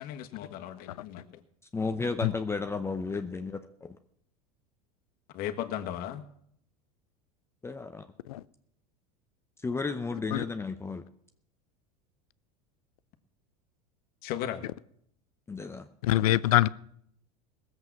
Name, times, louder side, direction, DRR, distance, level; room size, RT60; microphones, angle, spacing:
voice 1, 0.0-1.4 5.3-6.2 14.2-14.7, left 11 dB, 55° left, 1.5 m, -36 dB
voice 2, 1.7-4.0 7.6-8.1 9.6-11.0 15.5-15.9, left 4 dB, 15° left, 0.7 m, -33 dB
voice 3, 16.0-16.7, left 15 dB, 80° left, 0.5 m, -23 dB
19.0 x 8.0 x 5.9 m
hypercardioid pair, 90°, 19 cm